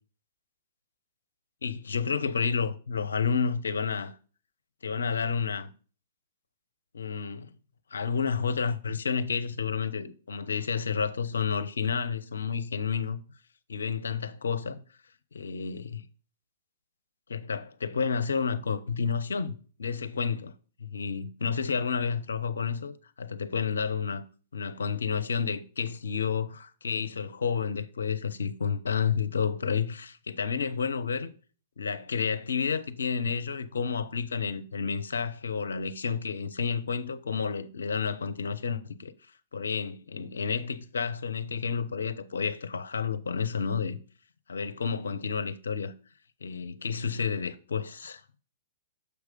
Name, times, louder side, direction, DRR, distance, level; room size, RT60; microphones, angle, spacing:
voice 1, 1.6-4.2 4.8-5.7 6.9-7.5 7.9-13.2 13.7-14.8 15.3-16.0 17.3-19.5 19.8-20.5 20.8-24.2 24.5-31.3 31.8-39.1 39.5-44.0 44.5-45.9 46.4-48.2, left 6 dB, 75° left, 0.7 m, -30 dB
6.9 x 4.8 x 5.0 m
figure-of-eight pair, 115°, 0 cm